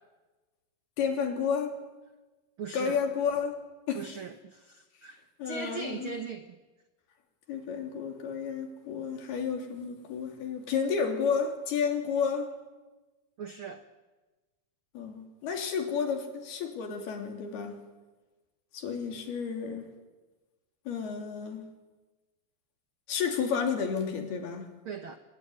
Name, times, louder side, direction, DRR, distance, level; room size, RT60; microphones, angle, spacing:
voice 1, 1.0-1.8 2.7-3.6 3.9-4.0 5.4-6.1 7.5-12.5 14.9-17.8 18.7-19.9 20.9-21.7 23.1-24.7, left 6 dB, 90° left, 5.0 m, -31 dB
voice 2, 2.6-3.0 3.9-6.5 13.4-13.8 24.8-25.2, right 5 dB, 80° right, 1.1 m, -39 dB
25.5 x 22.0 x 9.9 m
omnidirectional pair, 4.4 m